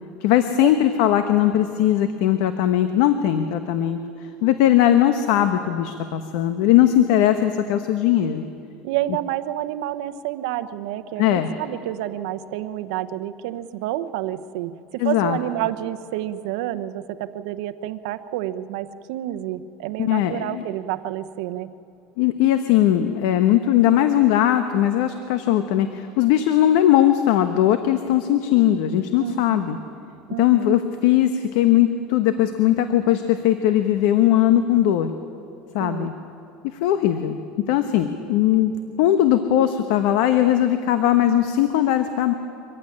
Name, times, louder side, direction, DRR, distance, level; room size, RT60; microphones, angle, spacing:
voice 1, 0.2-4.0 4.4-8.4 11.2-11.5 15.0-15.4 20.0-20.6 22.2-29.8 30.4-35.1 35.7-36.1 36.8-37.4 37.7-38.7 39.0-42.3, left 12 dB, 75° left, 8 dB, 1.2 m, -19 dB
voice 2, 8.8-21.7 29.2-29.7 30.3-30.8 35.8-36.1, right 13 dB, 80° right, 12 dB, 1.0 m, -29 dB
24.5 x 15.5 x 9.9 m, 2.7 s
supercardioid pair, 140°, 3 cm